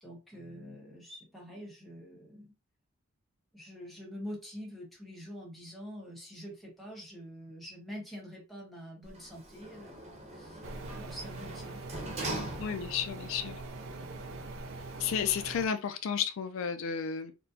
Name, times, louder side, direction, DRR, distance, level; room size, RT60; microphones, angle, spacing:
voice 1, 0.0-2.5 3.5-10.1 10.3-10.6 10.9-11.8 13.9-14.5, equal, ahead, 1.2 m, -46 dB
Sliding door, 9.0-13.2 13.6-13.7, right 1 dB, 30° right, 0.8 m, -41 dB
sound 1, 10.6-15.7, right 3 dB, 80° right, 0.5 m, -43 dB
voice 2, 12.6-13.6 15.0-17.3, left 7 dB, 70° left, 0.4 m, -32 dB
4.3 x 2.1 x 2.7 m
head